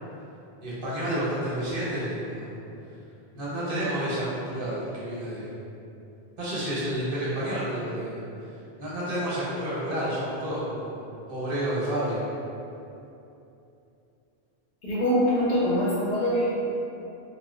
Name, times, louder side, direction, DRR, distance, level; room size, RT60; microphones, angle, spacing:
voice 1, 0.6-2.5 3.3-5.5 6.4-8.2 8.8-11.0 11.3-12.2, right 1 dB, 60° right, -8 dB, 1.0 m, -30 dB
voice 2, 14.8-16.5, equal, 55° left, -7 dB, 0.6 m, -24 dB
2.7 x 2.0 x 3.7 m, 2.8 s
omnidirectional pair, 1.1 m